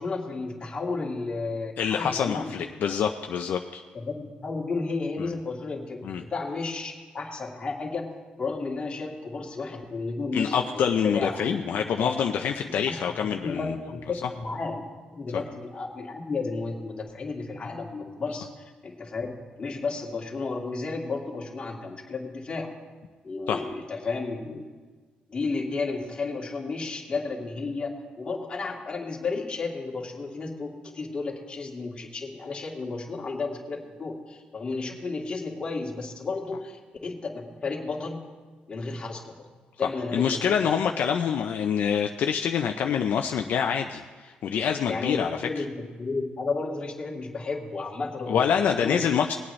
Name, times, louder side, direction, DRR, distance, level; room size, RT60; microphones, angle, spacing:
voice 1, 0.0-2.5 3.9-8.1 8.4-10.6 11.0-12.1 12.9-13.1 13.4-14.8 15.1-18.5 18.8-22.7 23.2-24.7 25.3-27.9 28.2-38.2 38.7-39.4 39.8-40.7 44.8-49.1, left 3 dB, 30° left, -1 dB, 1.9 m, -33 dB
voice 2, 1.8-3.8 5.2-5.3 6.0-6.2 10.3-13.7 23.5-23.6 40.1-45.5 48.3-49.3, left 7 dB, 70° left, 4 dB, 0.5 m, -26 dB
20.0 x 8.6 x 3.2 m, 1.4 s
cardioid pair, 125°, 3 cm